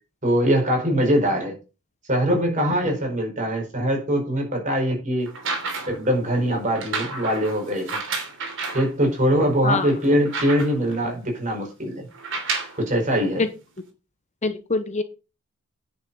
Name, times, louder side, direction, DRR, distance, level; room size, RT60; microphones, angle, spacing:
voice 1, 0.2-1.6 2.1-5.3 5.9-8.0 8.7-12.1 12.7-13.4, equal, 35° right, 2 dB, 5.0 m, -22 dB
sound 1, 5.3-6.1 6.7-8.9 9.5-9.6 9.9-10.9 12.1-12.8 13.8-13.9, right 4 dB, 60° right, 3.0 m, -30 dB
voice 2, 14.4-15.0, left 3 dB, 30° left, 10 dB, 0.9 m, -24 dB
10.0 x 6.5 x 5.5 m, 0.30 s
head